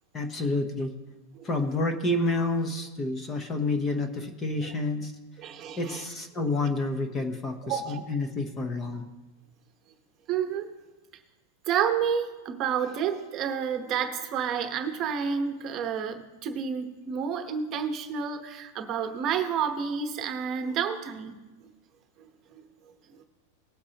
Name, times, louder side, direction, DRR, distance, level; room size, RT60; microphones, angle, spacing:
voice 1, 0.1-0.9 1.4-5.1 5.8-9.1, left 2 dB, 20° left, 7 dB, 0.9 m, -29 dB
voice 2, 5.4-6.0 7.6-8.0 10.3-10.7 11.7-21.4, right 7 dB, 30° right, 6 dB, 1.0 m, -30 dB
19.5 x 8.1 x 2.9 m, 1.2 s
supercardioid pair, 160°, 0 cm